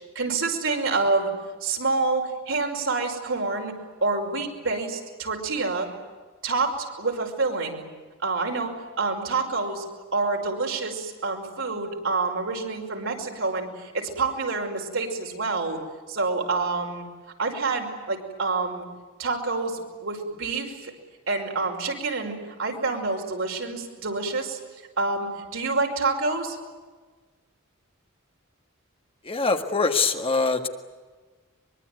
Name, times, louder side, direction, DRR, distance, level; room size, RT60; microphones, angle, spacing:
voice 1, 0.2-1.3 1.6-3.7 4.0-5.9 6.4-7.8 8.2-8.7 9.0-9.8 10.1-15.8 16.1-17.0 17.4-18.9 19.2-20.9 21.3-24.6 25.0-26.6, right 3 dB, 70° right, 2 dB, 5.5 m, -27 dB
voice 2, 29.2-30.7, left 4 dB, 30° left, 6 dB, 1.7 m, -23 dB
24.0 x 23.5 x 9.4 m, 1.4 s
head